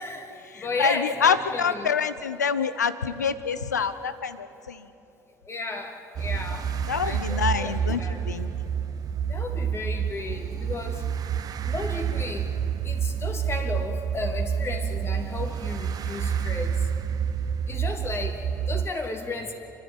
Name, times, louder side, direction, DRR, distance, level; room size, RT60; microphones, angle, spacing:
voice 1, 0.0-1.9 5.4-6.8 7.0-8.4 9.3-11.1 11.7-12.5 12.8-16.8 17.7-19.5, left 3 dB, 30° left, 4 dB, 2.9 m, -34 dB
voice 2, 0.5-4.9 6.9-8.0 8.3-8.5, left 6 dB, 90° left, 14 dB, 0.7 m, -26 dB
sound 1, 6.2-18.9, right 8 dB, 45° right, 1.1 m, -28 dB
29.5 x 11.5 x 9.0 m, 2.8 s
hypercardioid pair, 60°, 9 cm